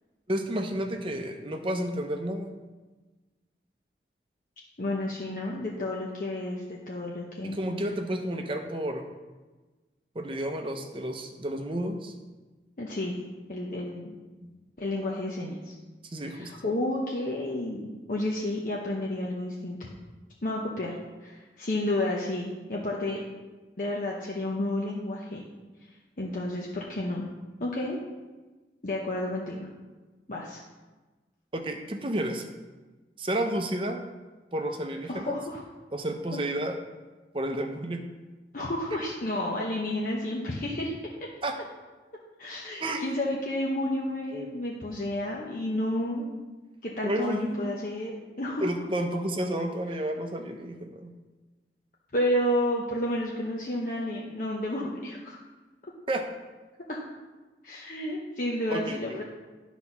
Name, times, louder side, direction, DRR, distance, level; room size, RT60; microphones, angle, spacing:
voice 1, 0.3-2.5 7.4-9.0 10.1-12.1 16.0-16.5 31.5-32.4 33.2-34.0 34.5-35.4 35.9-36.8 37.3-38.0 41.4-41.6 42.8-43.0 47.0-47.8 48.6-51.1 56.1-56.2 58.7-59.2, right 1 dB, 30° right, 5 dB, 0.7 m, -31 dB
voice 2, 4.8-7.6 12.8-13.2 13.5-14.2 14.8-15.7 16.3-19.8 20.4-20.9 21.2-23.2 23.8-25.4 26.2-27.3 27.6-28.0 28.8-29.7 30.3-30.6 35.1-35.6 36.3-36.4 38.5-40.9 42.4-46.3 46.8-48.7 52.1-55.4 56.9-57.0 57.6-59.2, left 1 dB, 50° left, -3 dB, 0.8 m, -31 dB
10.5 x 4.1 x 5.9 m, 1.2 s
head